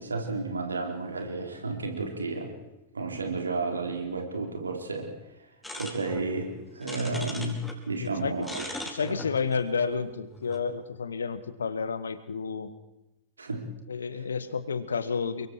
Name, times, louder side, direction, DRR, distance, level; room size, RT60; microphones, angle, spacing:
voice 1, 0.0-2.5 2.9-5.1 5.8-7.6 7.9-8.7 9.0-9.1 13.4-13.6, right 3 dB, 75° right, 2 dB, 4.3 m, -32 dB
sound 1, 5.6-7.8 8.1-10.6, left 1 dB, 5° left, 4.4 m, -40 dB
voice 2, 8.0-8.5 8.9-12.7 13.9-15.5, left 5 dB, 70° left, 12 dB, 1.6 m, -31 dB
29.5 x 23.5 x 4.8 m, 0.95 s
figure-of-eight pair, 90°, 0 cm